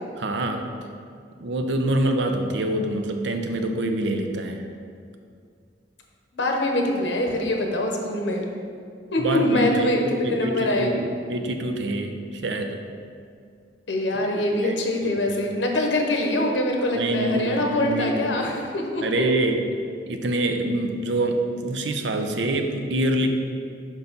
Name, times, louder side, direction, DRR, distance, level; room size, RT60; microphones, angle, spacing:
voice 1, 0.2-0.7 1.4-4.7 9.2-12.8 14.3-14.7 15.0-15.4 16.9-18.3 19.0-19.7 20.1-23.3, right 1 dB, 70° right, 5 dB, 0.6 m, -26 dB
voice 2, 6.3-8.4 9.1-10.9 13.9-19.0, left 1 dB, 80° left, 1 dB, 0.9 m, -24 dB
5.3 x 4.6 x 5.3 m, 2.3 s
head